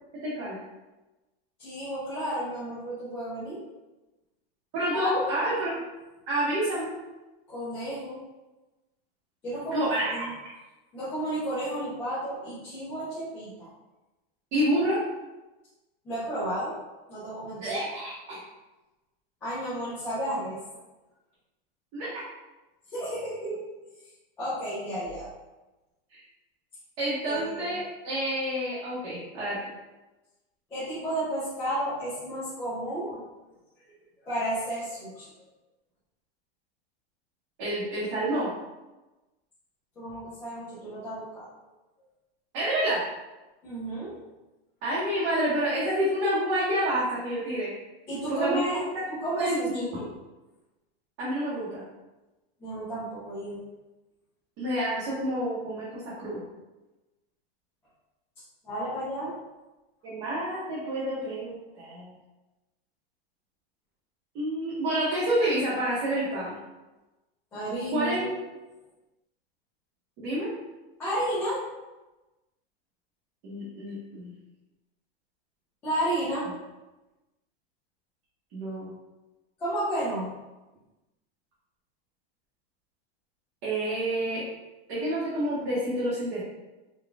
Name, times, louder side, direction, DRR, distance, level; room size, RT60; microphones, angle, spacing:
voice 1, 0.2-0.6 4.7-5.7 6.3-6.9 9.7-10.3 14.5-15.0 17.6-18.4 21.9-22.1 26.1-26.2 27.0-29.6 37.6-38.5 42.5-43.0 44.8-47.7 48.3-49.0 49.4-50.1 51.2-51.8 54.6-56.4 60.0-62.1 64.3-66.6 67.9-68.3 70.2-70.5 73.4-74.3 78.5-78.9 83.6-84.4 84.9-86.4, right 1 dB, 30° right, -10 dB, 0.8 m, -28 dB
voice 2, 1.6-3.6 4.9-5.4 7.5-8.2 9.4-10.3 10.9-13.7 16.0-16.8 17.1-17.8 19.4-20.6 22.9-23.6 24.4-25.3 27.2-27.7 30.7-33.1 34.3-35.2 40.0-41.5 43.6-44.2 48.1-48.8 49.1-50.0 52.6-53.6 58.6-59.3 67.5-68.3 71.0-71.6 75.8-76.5 79.6-80.3, right 1 dB, 5° left, -13 dB, 0.4 m, -32 dB
3.9 x 2.2 x 3.4 m, 1.1 s
supercardioid pair, 175°, 30 cm